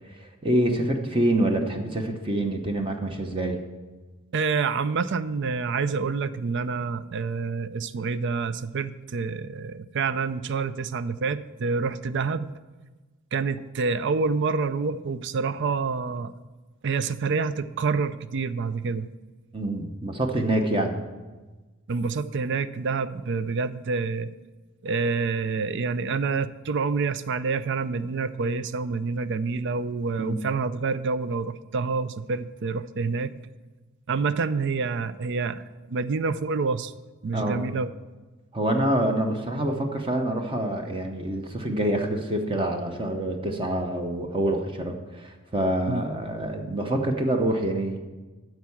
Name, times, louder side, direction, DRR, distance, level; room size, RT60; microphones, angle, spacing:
voice 1, 0.2-3.6 19.5-21.0 30.2-30.3 37.3-37.6 38.5-48.0, right 1 dB, 25° right, 4 dB, 0.9 m, -26 dB
voice 2, 4.3-12.5 13.3-16.3 16.8-19.1 21.9-24.3 24.8-33.4 34.1-35.6 35.9-36.9 37.2-37.9 45.9-46.1, right 4 dB, 55° right, 14 dB, 0.4 m, -27 dB
12.5 x 4.7 x 7.1 m, 1.2 s
head